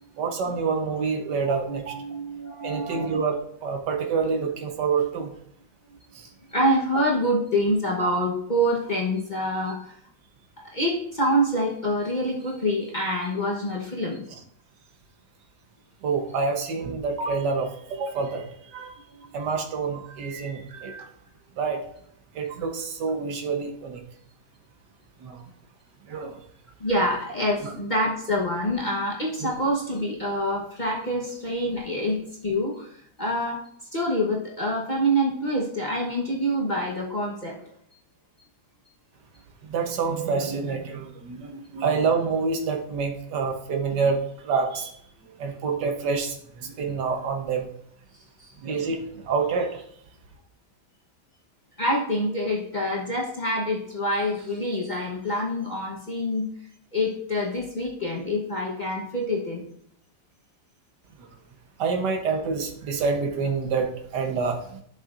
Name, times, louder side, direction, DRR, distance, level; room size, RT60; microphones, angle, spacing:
voice 1, 0.2-2.0 2.6-5.3 6.1-6.3 16.0-19.0 19.3-21.1 21.6-21.8 22.3-24.0 25.2-25.5 26.0-26.4 27.6-27.8 29.4-29.5 39.6-44.9 45.2-47.7 48.6-49.9 61.2-61.3 61.8-64.8, right 5 dB, 80° right, 4 dB, 1.7 m, -27 dB
voice 2, 1.5-3.2 6.5-10.0 10.7-14.3 19.2-19.3 26.8-32.9 33.2-33.6 33.9-37.6 48.4-48.5 51.8-56.5 56.9-59.6, equal, 30° left, -3 dB, 1.1 m, -26 dB
11.0 x 6.9 x 2.5 m, 0.69 s
omnidirectional pair, 1.8 m